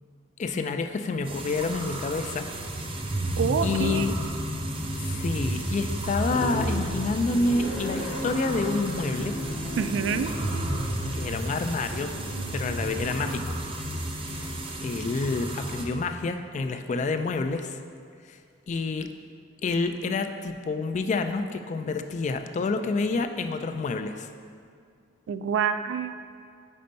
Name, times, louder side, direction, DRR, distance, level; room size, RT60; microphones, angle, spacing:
voice 1, 0.4-2.5 3.1-4.1 5.0-9.4 11.1-12.2 12.5-13.6 14.3-14.5 14.8-17.8 18.3-18.4 18.7-19.1 19.6-24.3, left 3 dB, 40° left, 8 dB, 0.3 m, -28 dB
sound 1, 1.3-15.8, right 1 dB, 30° right, 0.6 m, -32 dB
voice 2, 3.4-4.1 9.8-10.3 25.3-26.2, right 6 dB, 80° right, 11 dB, 0.3 m, -27 dB
sound 2, 6.3-13.2, left 1 dB, 75° left, 0.6 m, -36 dB
5.4 x 4.4 x 5.2 m, 2.2 s
head